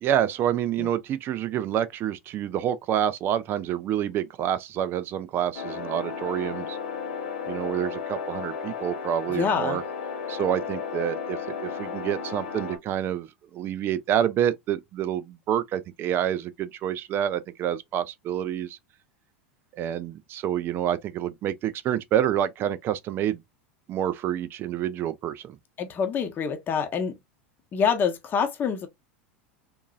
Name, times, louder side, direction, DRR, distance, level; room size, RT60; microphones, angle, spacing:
voice 1, 0.0-6.8 7.5-9.8 10.3-13.3 13.5-18.8 19.8-23.4 23.9-25.6, right 10 dB, 35° right, 0.5 m, -28 dB
sound 1, 5.5-12.8, left 6 dB, 70° left, 1.1 m, -34 dB
voice 2, 9.3-9.8 25.8-27.1 27.7-28.9, left 6 dB, 30° left, 0.8 m, -26 dB
3.7 x 2.5 x 2.3 m
figure-of-eight pair, 85°, 6 cm